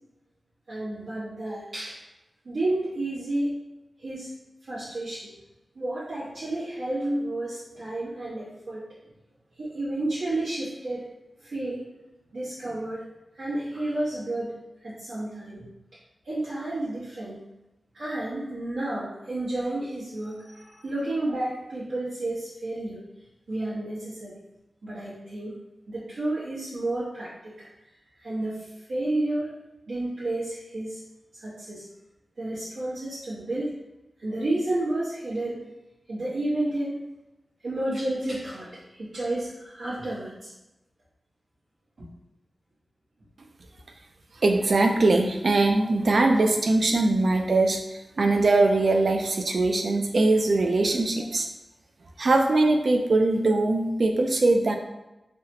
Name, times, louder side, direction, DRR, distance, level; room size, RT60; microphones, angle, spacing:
voice 1, 0.7-2.0 2.4-3.6 4.0-4.3 4.6-5.3 5.7-8.8 9.6-11.1 11.4-11.9 12.3-13.0 13.3-14.5 14.8-15.7 16.2-17.4 17.9-23.0 23.5-24.3 24.8-25.5 25.9-27.7 28.1-29.5 29.9-31.0 31.4-31.8 32.4-33.8 34.2-35.6 36.1-37.0 37.6-40.5 42.0-42.1, right 1 dB, 90° right, -14 dB, 1.3 m, -31 dB
voice 2, 44.4-51.5 52.2-54.7, right 2 dB, 60° right, 3 dB, 0.4 m, -21 dB
3.3 x 2.3 x 2.8 m, 0.96 s
wide cardioid pair, 110°, 0 cm